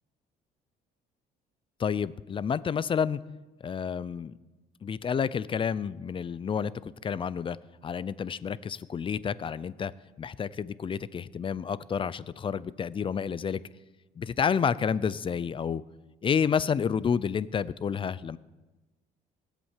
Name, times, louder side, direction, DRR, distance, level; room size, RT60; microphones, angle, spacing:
voice 1, 1.8-3.2 3.6-4.3 4.8-7.6 7.8-9.9 10.2-13.6 14.2-15.8 16.2-18.4, left 7 dB, 30° left, 18 dB, 0.5 m, -29 dB
18.5 x 8.4 x 7.4 m, 1.1 s
cardioid pair, 110°, 17 cm